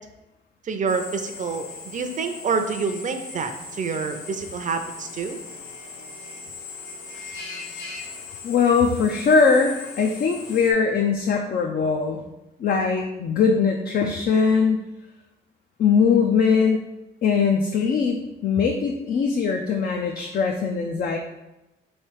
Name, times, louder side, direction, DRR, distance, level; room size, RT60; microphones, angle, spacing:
voice 1, 0.6-5.4, right 5 dB, 40° right, 6 dB, 0.5 m, -27 dB
Drill, 0.9-10.7, left 4 dB, 85° left, 0.9 m, -39 dB
voice 2, 8.4-12.2 12.6-14.8 15.8-16.8 17.2-21.2, left 5 dB, 50° left, 2 dB, 0.5 m, -21 dB
3.2 x 3.2 x 4.6 m, 0.96 s
cardioid pair, 90°, 20 cm